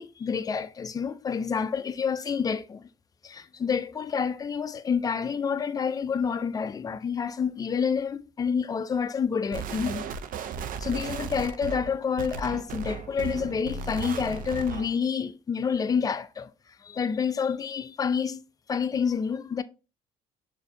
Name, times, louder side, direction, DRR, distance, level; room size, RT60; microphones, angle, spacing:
voice 1, 0.0-2.9 3.2-10.0 10.4-10.5 10.8-16.5 16.8-18.4 18.7-19.6, left 6 dB, 20° left, 0.3 m, -28 dB
sound 1, 9.5-15.0, right 6 dB, 55° right, 0.4 m, -35 dB
6.2 x 2.6 x 2.6 m
cardioid pair, 110°, 17 cm